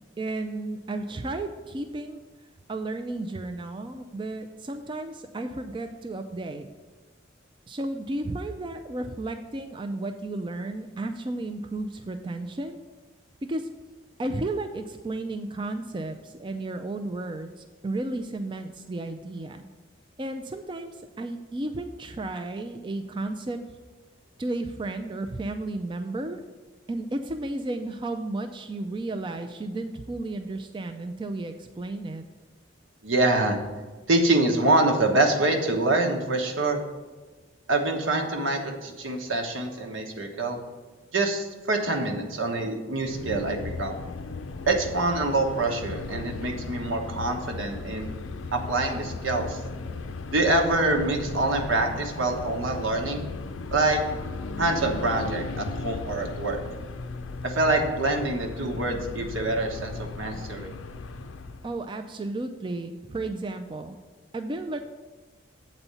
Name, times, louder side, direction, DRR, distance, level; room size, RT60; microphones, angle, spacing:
voice 1, 0.2-2.2 2.7-6.7 7.7-12.8 13.5-13.7 14.2-19.6 20.2-23.6 24.4-26.4 26.9-32.3 61.6-64.0 64.3-64.8, right 2 dB, 25° right, 6 dB, 0.3 m, -33 dB
voice 2, 33.0-33.6 34.1-36.8 37.7-40.6 41.1-43.9 44.6-48.1 48.5-49.6 50.3-53.3 53.7-54.0 54.6-56.6 57.4-60.7, right 2 dB, 80° right, 2 dB, 1.2 m, -25 dB
sound 1, 43.0-61.7, left 3 dB, 90° left, 0.5 m, -36 dB
7.9 x 4.2 x 6.9 m, 1.3 s
head